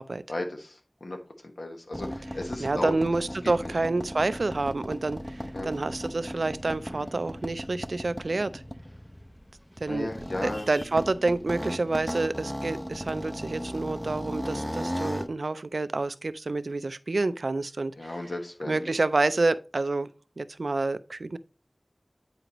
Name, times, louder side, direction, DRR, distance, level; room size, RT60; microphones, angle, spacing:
voice 1, 0.3-3.0 3.6-3.7 5.5-5.7 6.9-7.1 9.9-10.7 18.0-18.9, left 2 dB, 85° left, 1.4 m, -35 dB
sound 1, 1.9-15.3, equal, 10° left, 0.5 m, -37 dB
voice 2, 2.6-8.6 9.8-10.1 10.4-17.9 18.7-20.1 20.4-21.4, right 3 dB, 90° right, 0.4 m, -28 dB
9.2 x 4.9 x 3.0 m
wide cardioid pair, 55°, 0 cm